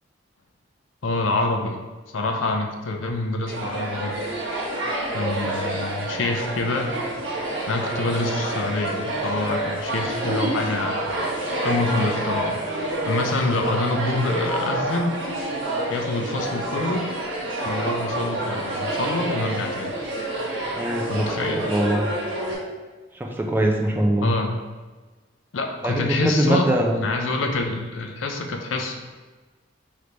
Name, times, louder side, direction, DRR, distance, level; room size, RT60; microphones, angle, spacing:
voice 1, 1.0-1.8 2.1-4.2 5.1-6.9 7.7-11.1 11.6-12.6 13.1-15.2 15.9-17.0 17.6-19.9 21.1-21.7 24.2-24.5 25.5-26.7 26.9-29.0, left 2 dB, 75° left, 3 dB, 0.5 m, -26 dB
sound 1, 3.5-22.5, right 1 dB, 75° right, 1.3 m, -28 dB
voice 2, 20.8-22.0 23.1-24.3 25.8-27.0, right 1 dB, 10° right, 0 dB, 0.4 m, -23 dB
3.3 x 3.2 x 3.9 m, 1.3 s
head